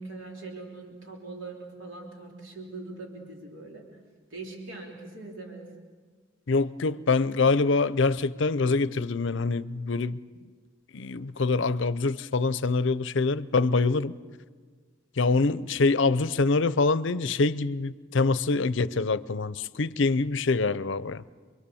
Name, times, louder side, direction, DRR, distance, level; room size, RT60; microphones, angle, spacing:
voice 1, 0.0-3.9 4.3-5.7, right 3 dB, 70° right, 3.6 m, -41 dB
voice 2, 6.5-10.2 10.9-14.1 15.2-21.2, left 3 dB, 60° left, 0.6 m, -25 dB
26.5 x 23.0 x 7.1 m
head